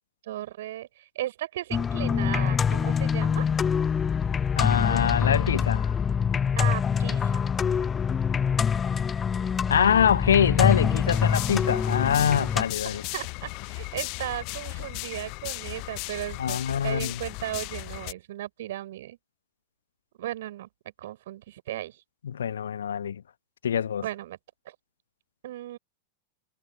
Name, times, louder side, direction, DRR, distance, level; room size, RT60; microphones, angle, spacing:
voice 1, 0.2-3.5 6.6-7.4 12.8-19.2 20.2-20.7 21.0-22.0 24.0-24.4 24.6-24.7 25.4-25.8, right 14 dB, 55° right, 5.1 m, -36 dB
sound 1, 1.7-12.6, left 7 dB, 20° left, 1.1 m, -25 dB
voice 2, 4.6-5.9 9.7-13.0 16.4-17.2 22.2-23.2 23.6-24.0, left 8 dB, 65° left, 1.0 m, -24 dB
sound 2, 11.1-18.1, left 32 dB, 45° left, 0.7 m, -36 dB
figure-of-eight pair, 90°, 0 cm